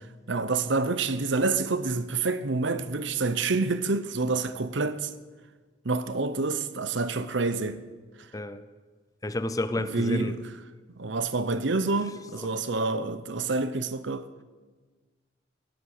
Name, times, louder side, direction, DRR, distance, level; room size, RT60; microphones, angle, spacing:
voice 1, 0.3-5.1 5.8-7.8 9.8-10.4 11.0-14.3, right 3 dB, 70° right, 0.9 m, -28 dB
voice 2, 9.2-10.3 12.4-12.5, left 1 dB, 20° left, 0.6 m, -30 dB
17.0 x 11.5 x 6.6 m
head